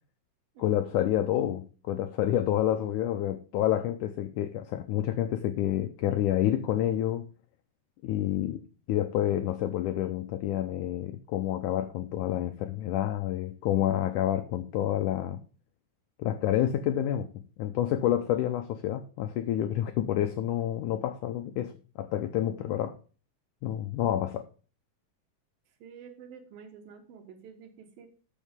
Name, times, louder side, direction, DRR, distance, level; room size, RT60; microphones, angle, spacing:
voice 1, 0.6-7.3 8.0-8.6 8.9-15.4 16.2-17.3 17.6-21.7 22.0-23.0 23.6-24.4, left 12 dB, 85° left, 8 dB, 1.8 m, -28 dB
voice 2, 25.8-28.1, right 7 dB, 75° right, 6 dB, 3.0 m, -49 dB
13.5 x 6.3 x 3.5 m, 0.37 s
omnidirectional pair, 4.3 m